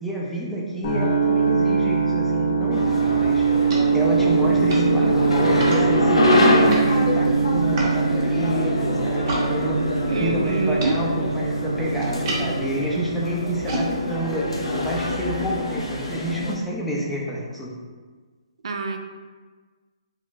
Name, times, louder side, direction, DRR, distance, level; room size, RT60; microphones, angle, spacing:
voice 1, 0.0-3.4 3.9-9.8 10.2-17.7, equal, 5° left, -5 dB, 0.4 m, -29 dB
sound 1, 0.8-16.8, right 5 dB, 55° left, 0.8 m, -23 dB
sound 2, 2.7-16.6, left 1 dB, 90° left, 0.6 m, -25 dB
sound 3, 3.0-9.5 9.8-15.6, right 1 dB, 35° right, 0.7 m, -35 dB
voice 2, 4.9-5.4 10.1-11.0 18.6-19.0, right 3 dB, 75° right, 4 dB, 0.3 m, -26 dB
2.6 x 2.2 x 3.7 m, 1.4 s
hypercardioid pair, 145°, 3 cm